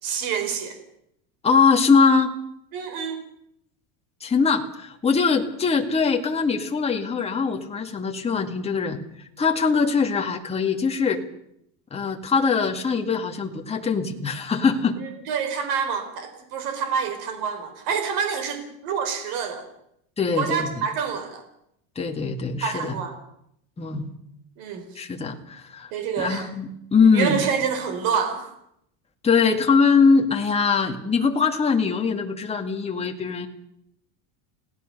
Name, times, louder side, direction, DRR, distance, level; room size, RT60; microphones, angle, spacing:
voice 1, 0.0-0.7 2.7-3.2 15.0-19.6 20.3-21.4 22.6-23.2 24.6-24.9 25.9-26.5 27.1-28.5, right 7 dB, 55° right, 7 dB, 4.5 m, -27 dB
voice 2, 1.4-2.4 4.2-9.0 9.4-11.2 11.9-15.0 20.2-20.9 22.0-23.0 23.8-24.1 25.0-25.9 26.2-27.5 29.2-33.5, left 5 dB, 15° left, 2 dB, 2.2 m, -22 dB
28.5 x 17.5 x 6.8 m, 0.76 s
cardioid pair, 160°, 42 cm